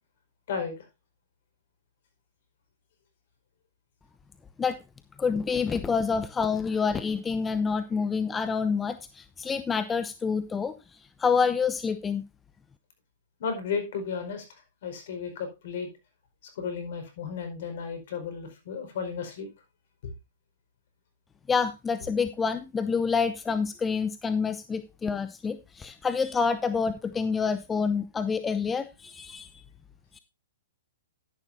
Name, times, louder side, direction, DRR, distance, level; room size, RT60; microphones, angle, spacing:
voice 1, 5.2-10.7 11.2-12.2 21.5-29.6 30.1-30.2, left 5 dB, 15° left, 11 dB, 0.7 m, -27 dB
voice 2, 13.4-14.4 14.8-15.9 16.6-19.5, left 6 dB, 60° left, 6 dB, 4.8 m, -33 dB
11.5 x 10.5 x 2.7 m, 0.26 s
hypercardioid pair, 125°, 0 cm